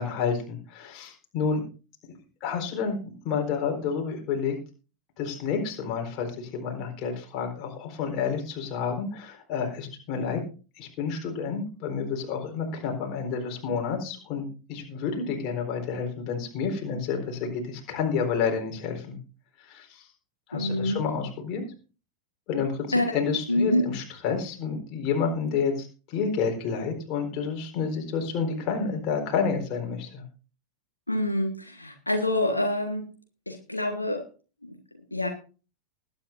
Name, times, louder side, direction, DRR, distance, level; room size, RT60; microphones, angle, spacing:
voice 1, 0.0-1.6 2.4-3.0 3.2-4.5 5.2-10.4 10.8-19.2 19.6-20.1 20.5-21.6 22.5-22.9 23.1-30.2, left 6 dB, 40° left, 2 dB, 4.2 m, -29 dB
voice 2, 20.5-21.0 22.9-23.1 23.5-23.8 31.1-33.0 33.5-34.2 34.6-34.8 35.1-35.3, left 1 dB, 85° left, 4 dB, 1.5 m, -26 dB
20.5 x 9.7 x 2.7 m, 0.36 s
figure-of-eight pair, 90°, 0 cm